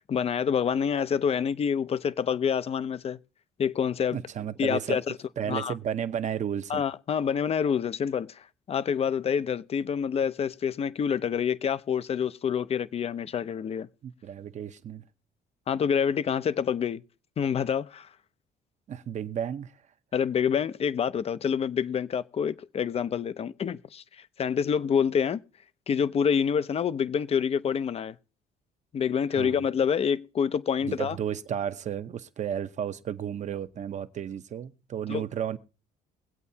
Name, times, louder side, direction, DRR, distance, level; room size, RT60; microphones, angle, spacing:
voice 1, 0.1-3.2 3.6-4.2 4.6-5.1 5.5-5.7 6.7-13.9 15.7-17.0 17.4-18.1 20.1-24.0 24.4-25.4 25.9-28.1 28.9-31.2 35.1-35.2, left 7 dB, 35° left, 0.6 m, -27 dB
voice 2, 4.1-5.0 5.4-6.8 14.0-15.1 18.9-19.7 29.4-29.7 30.8-35.6, right 9 dB, 45° right, 0.8 m, -33 dB
22.5 x 8.3 x 2.8 m
cardioid pair, 110°, 17 cm